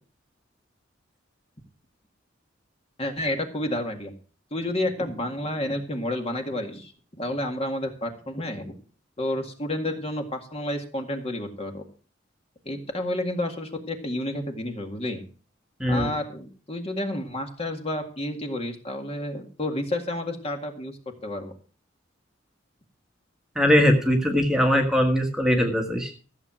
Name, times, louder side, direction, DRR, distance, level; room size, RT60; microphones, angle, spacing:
voice 1, 3.0-4.1 4.5-6.9 7.2-8.7 9.2-11.8 12.7-15.2 15.9-21.5, left 1 dB, 30° left, 4 dB, 1.9 m, -30 dB
voice 2, 15.8-16.1 23.5-26.2, equal, 5° right, 2 dB, 1.5 m, -21 dB
14.5 x 7.5 x 6.2 m, 0.39 s
head